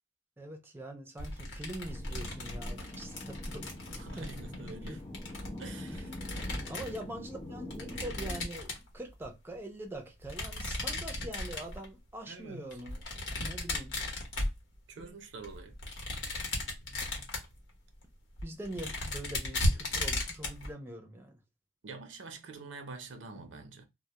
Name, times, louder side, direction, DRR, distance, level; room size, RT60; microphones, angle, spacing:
voice 1, 0.4-5.0 5.9-6.1 6.7-13.0 13.4-14.0 15.0-15.2 16.8-17.3 18.4-21.4, right 1 dB, 10° right, 0.4 m, -44 dB
sound 1, 1.2-7.0 7.7-9.2 10.2-11.9 12.7-15.0 15.4-17.6 18.0-18.1 18.4-20.7, left 1 dB, 85° left, 0.9 m, -36 dB
sound 2, 1.9-8.5, left 1 dB, 30° left, 0.6 m, -45 dB
voice 2, 4.0-5.0 5.6-6.1 12.3-12.7 14.9-15.8 21.8-23.9, right 3 dB, 85° right, 0.5 m, -46 dB
2.2 x 2.0 x 2.8 m
head